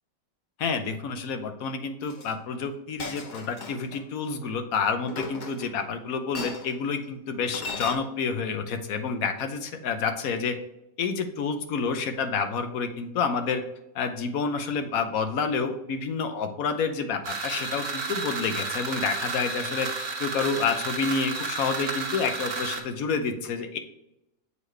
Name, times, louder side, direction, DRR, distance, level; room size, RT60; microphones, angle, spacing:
voice 1, 0.6-10.6 11.0-13.6 13.9-23.8, left 5 dB, 85° left, 8 dB, 1.2 m, -29 dB
Chink clink, 2.1-2.3 3.0-4.0 5.1-5.9 6.3-6.7 7.5-8.0, left 4 dB, 45° left, 0.7 m, -36 dB
sound 1, 17.2-22.8, right 4 dB, 70° right, 1.5 m, -32 dB
7.1 x 4.2 x 3.2 m, 0.87 s
omnidirectional pair, 1.5 m